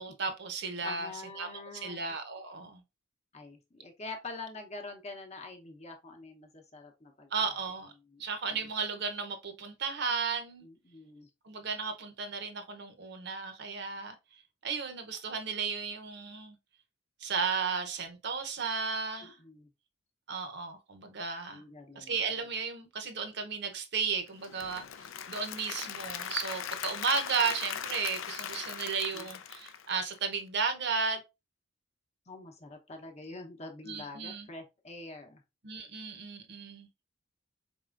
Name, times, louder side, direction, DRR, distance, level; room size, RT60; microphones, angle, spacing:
voice 1, 0.0-1.1 1.4-2.8 7.3-7.9 8.2-10.7 11.4-14.1 14.6-16.6 17.2-19.4 20.3-21.6 22.0-31.2 33.8-34.5 35.6-36.9, right 5 dB, 55° right, 0.7 m, -34 dB
voice 2, 0.8-2.0 3.3-7.6 8.1-8.2 10.6-11.3 19.2-19.7 21.5-22.2 29.1-29.3 32.3-35.4, left 3 dB, 30° left, 0.8 m, -45 dB
Applause / Crowd, 24.3-30.3, left 8 dB, 75° left, 0.4 m, -39 dB
4.2 x 3.5 x 2.4 m
head